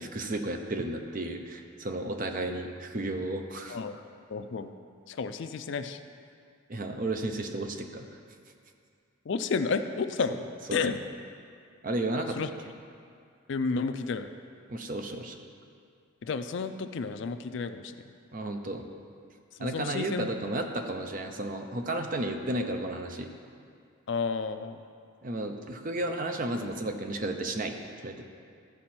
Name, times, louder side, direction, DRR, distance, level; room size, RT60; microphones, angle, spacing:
voice 1, 0.0-3.8 6.7-8.1 10.7-10.9 11.8-12.4 14.7-15.4 18.3-18.8 19.6-23.3 25.2-27.8 28.0-28.2, right 1 dB, 40° right, 5 dB, 0.6 m, -33 dB
voice 2, 3.7-4.0 4.3-4.7 5.1-6.0 9.3-10.4 10.7-10.9 12.4-12.5 13.5-14.3 16.2-17.9 19.6-20.3 24.1-24.8, left 4 dB, 60° left, 9 dB, 0.4 m, -31 dB
14.0 x 5.2 x 4.3 m, 2.3 s
head